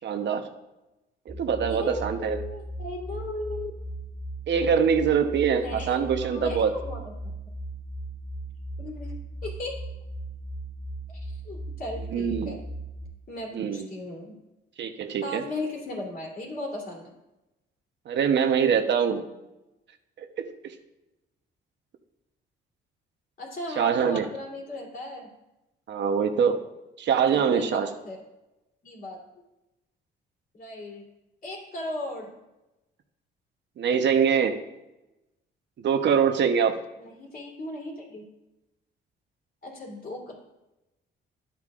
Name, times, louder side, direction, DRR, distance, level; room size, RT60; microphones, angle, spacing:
voice 1, 0.0-0.4 1.3-2.4 4.5-6.7 12.1-12.5 13.5-13.9 14.8-15.4 18.1-19.2 20.2-20.5 23.8-24.2 25.9-26.6 27.0-27.9 33.8-34.6 35.8-36.7, right 7 dB, 65° right, 6 dB, 1.0 m, -24 dB
sound 1, 1.3-13.1, right 1 dB, 5° right, 2.4 m, -37 dB
voice 2, 1.6-3.7 5.6-7.3 8.8-9.1 9.4-9.8 11.1-12.6 13.3-14.3 15.2-17.1 23.4-25.3 27.3-28.2 28.8-29.2 30.5-31.1 31.4-32.3 37.0-38.3 39.6-40.4, left 2 dB, 45° left, -1 dB, 3.2 m, -37 dB
12.0 x 8.4 x 2.5 m, 0.99 s
cardioid pair, 90°, 20 cm